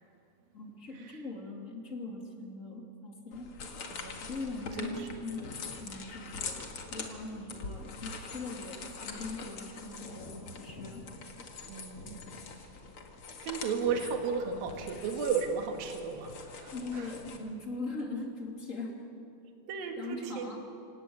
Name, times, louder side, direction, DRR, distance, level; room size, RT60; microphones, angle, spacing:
voice 1, 0.5-3.5 4.2-11.0 16.7-18.9 20.0-20.6, left 3 dB, 25° left, 1 dB, 2.7 m, -41 dB
sound 1, 3.3-17.4, left 4 dB, 45° left, 2.3 m, -44 dB
voice 2, 4.7-5.1 11.7-12.2 12.6-12.7 13.4-17.2 19.7-20.5, right 6 dB, 75° right, 4 dB, 3.6 m, -34 dB
26.5 x 17.5 x 8.8 m, 2.8 s
omnidirectional pair, 4.2 m